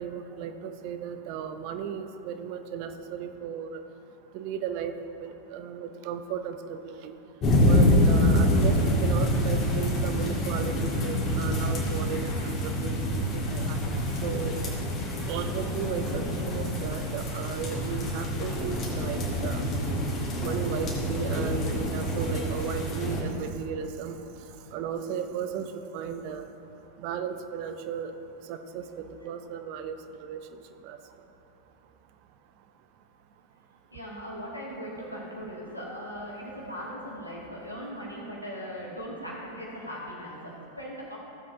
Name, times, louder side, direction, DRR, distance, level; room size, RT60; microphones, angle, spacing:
voice 1, 0.0-3.8 4.3-4.9 5.2-7.1 7.6-13.0 13.3-14.5 15.3-19.7 20.4-24.2 24.7-25.6 25.9-26.5 27.0-28.1 28.5-30.4 30.8-31.0, right 7 dB, 45° right, 8 dB, 0.6 m, -35 dB
sound 1, 7.4-23.2, left 1 dB, 30° left, 2.0 m, -26 dB
voice 2, 33.9-41.2, equal, 85° left, -5 dB, 2.2 m, -39 dB
15.5 x 7.4 x 2.7 m, 2.8 s
figure-of-eight pair, 90°, 0 cm